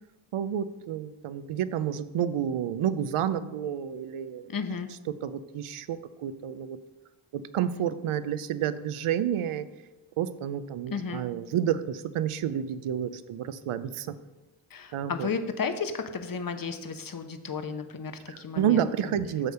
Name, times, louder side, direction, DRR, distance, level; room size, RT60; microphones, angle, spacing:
voice 1, 0.3-4.5 5.2-6.8 7.3-9.7 10.2-14.2 14.9-15.3 18.3-19.5, right 9 dB, 80° right, 14 dB, 0.6 m, -30 dB
voice 2, 4.5-4.9 10.9-11.2 14.7-19.1, left 5 dB, 45° left, 8 dB, 0.9 m, -33 dB
8.9 x 3.4 x 6.5 m, 1.1 s
cardioid pair, 50°, 49 cm